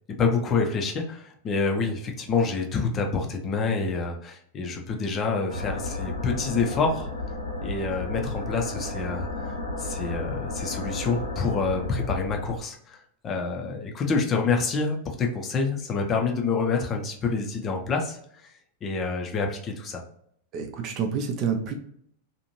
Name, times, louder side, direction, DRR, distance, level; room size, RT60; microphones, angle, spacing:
voice 1, 0.1-7.1 7.6-13.0 13.2-18.5 18.8-20.0, left 4 dB, 25° left, 2 dB, 0.6 m, -27 dB
sound 1, 5.5-12.6, left 2 dB, 80° left, 0.7 m, -33 dB
voice 2, 20.5-21.7, right 6 dB, 35° right, 4 dB, 0.5 m, -28 dB
2.7 x 2.5 x 2.9 m, 0.67 s
figure-of-eight pair, 90°, 0 cm